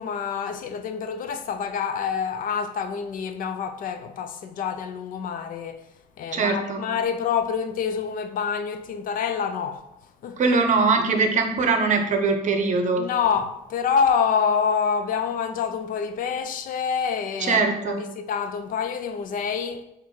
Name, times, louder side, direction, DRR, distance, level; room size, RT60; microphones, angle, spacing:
voice 1, 0.0-5.9 6.2-9.8 10.2-10.4 13.0-19.8, left 6 dB, 55° left, 0.5 m, -27 dB
voice 2, 6.3-6.8 10.4-13.0 17.4-18.0, right 4 dB, 45° right, 0.7 m, -21 dB
4.1 x 2.6 x 4.5 m
cardioid pair, 110°, 17 cm